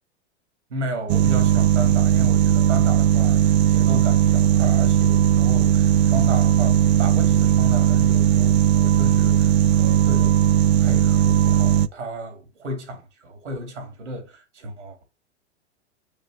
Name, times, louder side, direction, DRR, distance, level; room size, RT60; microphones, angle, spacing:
voice 1, 0.7-10.4 10.8-15.0, right 1 dB, 80° right, 2.8 m, -34 dB
sound 1, 1.1-11.9, right 10 dB, 65° right, 0.5 m, -18 dB
6.6 x 5.6 x 3.1 m
figure-of-eight pair, 90°, 35 cm